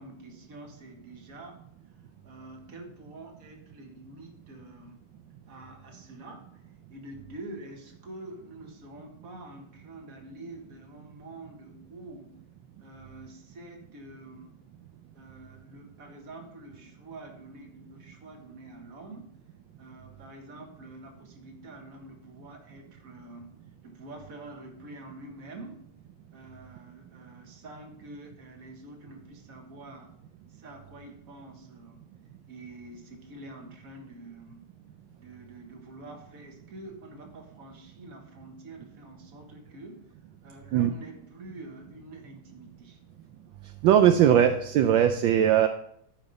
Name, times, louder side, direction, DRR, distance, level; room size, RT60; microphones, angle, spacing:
voice 1, 0.0-1.6 1.9-2.0 2.2-5.0 5.5-6.6 6.9-12.3 12.8-14.6 15.1-19.3 19.8-23.6 23.8-25.9 26.3-30.1 30.5-32.1 32.5-34.6 35.2-40.1 40.4-43.0, right 2 dB, 45° right, 3 dB, 1.7 m, -46 dB
voice 2, 43.8-45.7, right 10 dB, 75° right, 7 dB, 1.2 m, -20 dB
14.0 x 5.2 x 4.0 m, 0.68 s
omnidirectional pair, 2.4 m